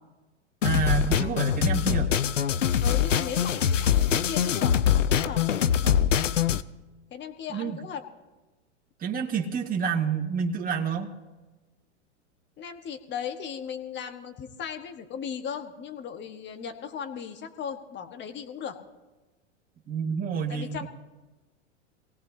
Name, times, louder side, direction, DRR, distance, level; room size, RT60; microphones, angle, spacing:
sound 1, 0.6-6.6, left 8 dB, 90° left, 0.6 m, -23 dB
voice 1, 0.6-2.1 5.8-6.0 7.5-7.8 9.0-11.1 19.9-20.9, right 6 dB, 25° right, 0 dB, 1.7 m, -29 dB
voice 2, 2.8-5.4 7.1-8.0 12.6-18.8 20.5-20.9, left 7 dB, 30° left, 7 dB, 1.5 m, -37 dB
24.5 x 17.5 x 2.8 m, 1.2 s
hypercardioid pair, 100°, 36 cm